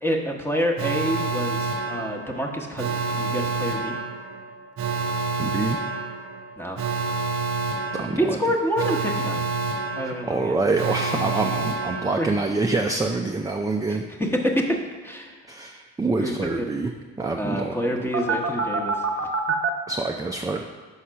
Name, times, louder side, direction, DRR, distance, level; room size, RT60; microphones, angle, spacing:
voice 1, 0.0-4.0 6.6-6.8 8.2-9.5 10.0-10.6 12.2-12.3 13.9-15.4 16.2-16.7 17.4-19.3, equal, 10° left, 0 dB, 1.0 m, -27 dB
Alarm, 0.8-12.7 18.1-19.7, right 4 dB, 50° right, 0.8 m, -28 dB
voice 2, 5.4-5.8 7.9-8.4 10.0-14.0 15.5-16.9 17.2-18.1 19.9-20.6, right 3 dB, 10° right, 2 dB, 0.4 m, -26 dB
5.6 x 4.2 x 6.2 m, 1.5 s
cardioid pair, 90°, 30 cm